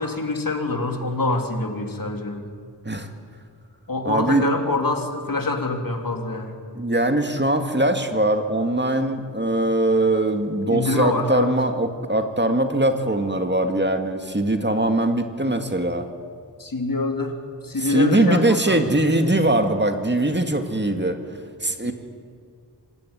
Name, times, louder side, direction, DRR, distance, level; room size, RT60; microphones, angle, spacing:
voice 1, 0.0-2.5 3.9-6.6 10.7-11.5 16.6-17.4 17.6-18.8 21.8-21.9, left 2 dB, 50° left, 4 dB, 3.4 m, -25 dB
voice 2, 4.1-4.4 6.7-16.1 17.8-21.2 21.6-21.9, right 1 dB, 25° right, 6 dB, 2.1 m, -21 dB
26.0 x 19.0 x 9.9 m, 2.1 s
wide cardioid pair, 75°, 42 cm